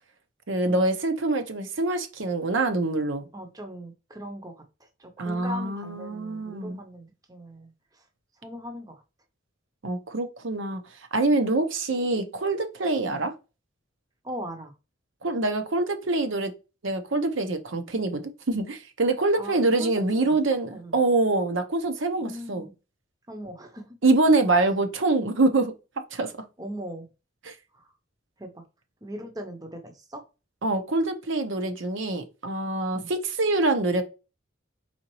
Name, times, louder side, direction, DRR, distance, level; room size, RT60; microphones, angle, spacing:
voice 1, 0.5-3.3 5.2-6.8 9.8-10.8 11.1-13.3 15.2-16.5 16.8-22.7 24.0-25.7 26.1-26.3 27.4-27.5 30.6-34.0, right 2 dB, 70° right, 0.7 m, -25 dB
voice 2, 3.3-8.0 8.4-9.0 13.1-13.2 14.2-14.7 19.4-19.9 20.7-21.0 22.2-22.7 23.3-23.9 26.6-27.1 27.7-27.9 28.4-28.6 29.0-30.2 32.9-33.1, equal, 20° right, 0.7 m, -39 dB
4.3 x 3.9 x 3.0 m
head